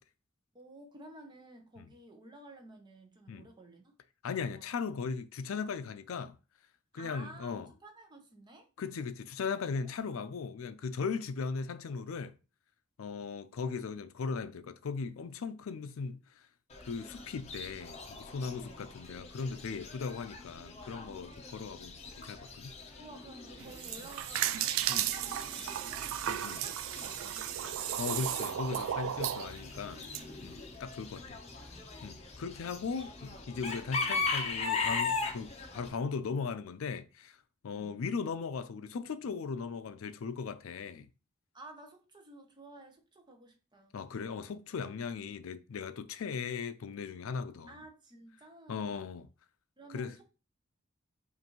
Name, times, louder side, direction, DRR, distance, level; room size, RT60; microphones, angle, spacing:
voice 1, 0.5-3.9 4.5-4.7 5.1-5.2 7.0-8.7 9.8-10.2 18.4-18.9 23.0-27.8 28.3-28.4 29.8-30.5 31.4-31.9 32.6-33.1 37.7-38.0 41.5-43.9 47.7-49.1 49.8-50.2, right 1 dB, 20° right, 0.7 m, -53 dB
voice 2, 4.2-6.4 6.9-7.7 8.8-12.3 13.0-16.4 16.9-22.7 24.9-25.1 26.3-26.6 28.0-30.0 30.4-31.4 32.0-37.4 37.6-41.1 43.9-47.8 48.7-49.3 49.9-50.1, left 5 dB, 80° left, 0.4 m, -38 dB
Chicken rooster / Bird, 16.7-35.9, left 4 dB, 30° left, 0.7 m, -40 dB
sound 1, 23.6-30.2, right 11 dB, 75° right, 0.3 m, -34 dB
5.3 x 2.6 x 3.0 m
head